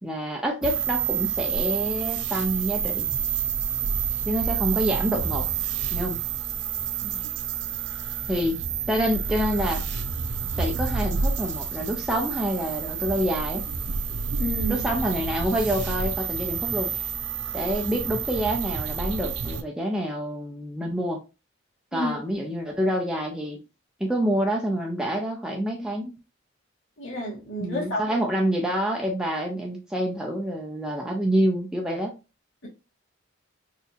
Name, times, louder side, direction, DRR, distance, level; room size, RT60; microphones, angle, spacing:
voice 1, 0.0-3.1 4.3-5.4 5.9-6.2 8.3-8.6 8.9-9.8 10.6-13.6 13.9-14.0 14.7-16.9 17.5-21.2 21.9-23.6 24.0-26.2 27.6-32.2, equal, 5° right, -1 dB, 0.4 m, -27 dB
sound 1, 0.6-19.6, right 6 dB, 60° right, 0.5 m, -29 dB
voice 2, 14.4-14.8 21.9-22.2 27.0-28.2, equal, 70° left, -3 dB, 1.8 m, -30 dB
4.1 x 2.7 x 2.5 m, 0.29 s
head